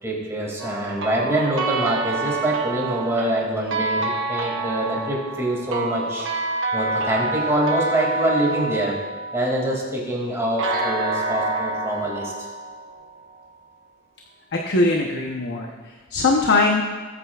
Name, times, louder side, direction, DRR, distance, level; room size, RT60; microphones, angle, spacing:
voice 1, 0.0-6.3 6.7-9.0 9.3-12.3, right 1 dB, 15° right, -3 dB, 2.4 m, -25 dB
sound 1, 0.6-9.8 10.6-13.5, right 3 dB, 60° right, 1.1 m, -28 dB
voice 2, 14.5-16.8, left 3 dB, 55° left, 1 dB, 0.9 m, -21 dB
19.5 x 8.8 x 2.4 m, 1.5 s
head